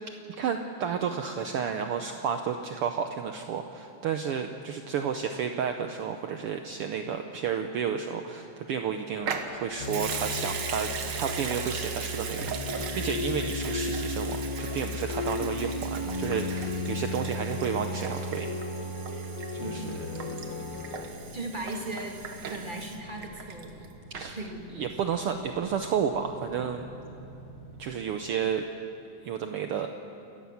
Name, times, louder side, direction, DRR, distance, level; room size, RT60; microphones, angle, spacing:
voice 1, 0.4-18.5 19.5-20.1 24.1-24.4 24.7-26.9 27.8-28.6 29.2-29.9, right 7 dB, 80° right, 6 dB, 1.2 m, -31 dB
Water tap faucet / Sink (filling or washing) / Liquid, 9.2-23.9 24.1-24.2, right 6 dB, 55° right, 1.3 m, -38 dB
sound 1, 9.8-21.1, left 2 dB, 60° left, 0.9 m, -34 dB
voice 2, 19.6-20.0 21.3-22.2 22.5-23.9 24.3-25.3, right 2 dB, 25° right, 1 dB, 1.2 m, -38 dB
sound 2, 20.2-27.9, equal, 90° left, 7.6 m, -49 dB
29.5 x 14.0 x 7.2 m, 2.6 s
omnidirectional pair, 3.6 m